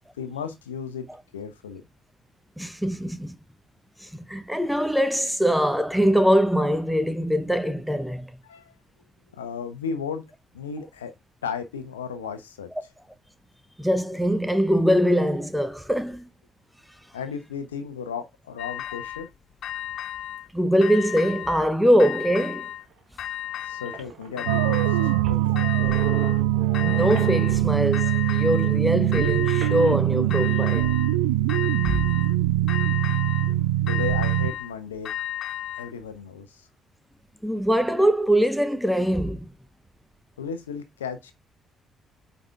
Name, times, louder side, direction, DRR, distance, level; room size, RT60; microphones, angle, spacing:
voice 1, 0.2-1.1 1.3-1.8 8.4-8.7 9.3-10.2 10.5-11.1 11.4-12.7 17.1-19.3 23.6-25.0 25.3-25.7 33.9-35.1 35.8-36.7 40.4-41.3, left 6 dB, 80° left, 0.9 m, -34 dB
voice 2, 2.6-3.4 4.0-8.3 13.8-16.3 20.5-22.7 26.8-30.9 31.8-32.0 37.4-39.5, equal, ahead, 1.0 m, -22 dB
sound 1, 18.6-19.3 19.6-20.5 20.8-21.7 22.0-22.9 23.2-24.0 24.4-25.2 25.6-26.4 26.7-27.6 27.9-28.8 29.1-30.0 30.3-31.2 31.5-32.4 32.7-33.5 33.9-35.9, left 12 dB, 55° left, 0.4 m, -34 dB
sound 2, 22.9-23.0 23.6-23.7 23.9-27.9 29.6-30.7, right 8 dB, 55° right, 1.6 m, -38 dB
sound 3, 24.5-34.5, right 14 dB, 70° right, 0.3 m, -22 dB
8.7 x 4.0 x 3.4 m
figure-of-eight pair, 45°, 0 cm